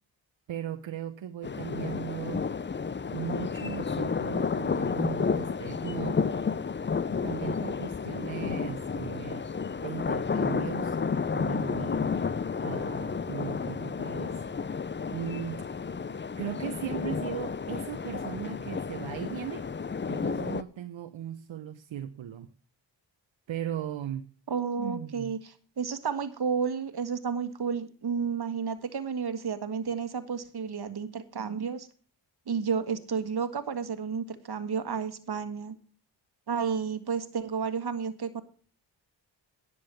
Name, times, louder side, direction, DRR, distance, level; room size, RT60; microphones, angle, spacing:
voice 1, 0.5-2.4 3.1-6.2 7.1-9.5 9.8-12.1 12.6-14.4 15.1-15.6 16.4-19.6 20.1-22.5 23.5-24.2 24.8-25.3, right 10 dB, 75° right, 8 dB, 0.8 m, -38 dB
sound 1, 1.4-20.6, left 5 dB, 25° left, 0.6 m, -31 dB
voice 2, 24.5-31.9 32.5-35.7 36.5-38.4, right 6 dB, 55° right, 11 dB, 1.6 m, -31 dB
10.5 x 7.1 x 7.1 m, 0.42 s
cardioid pair, 55°, 46 cm